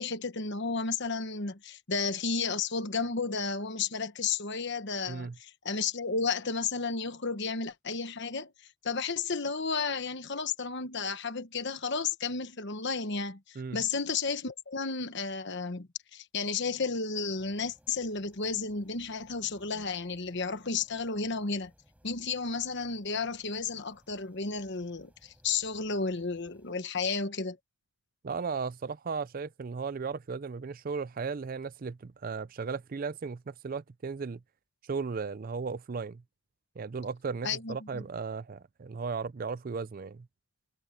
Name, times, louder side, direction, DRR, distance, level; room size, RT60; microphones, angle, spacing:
voice 1, 0.0-8.5 8.8-21.7 22.0-27.6 37.4-38.0, left 4 dB, 50° left, 1.2 m, -33 dB
sound 1, 17.4-26.7, equal, 5° right, 5.9 m, -64 dB
voice 2, 28.2-34.4 34.8-36.2 36.8-40.3, right 5 dB, 40° right, 0.4 m, -36 dB
head